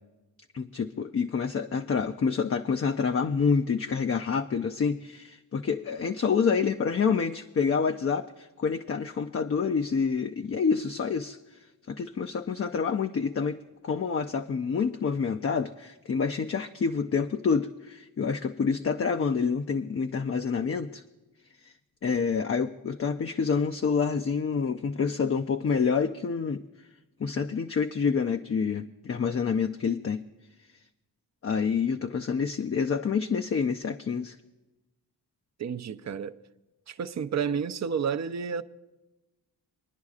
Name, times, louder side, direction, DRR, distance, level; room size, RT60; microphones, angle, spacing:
voice 1, 0.5-11.4 11.9-21.0 21.6-21.7 22.0-26.6 27.2-30.2 31.4-34.4, left 5 dB, 35° left, 0.4 m, -27 dB
voice 2, 35.6-36.4 36.9-38.6, right 6 dB, 40° right, 0.5 m, -30 dB
26.0 x 10.5 x 2.4 m
cardioid pair, 60°, 42 cm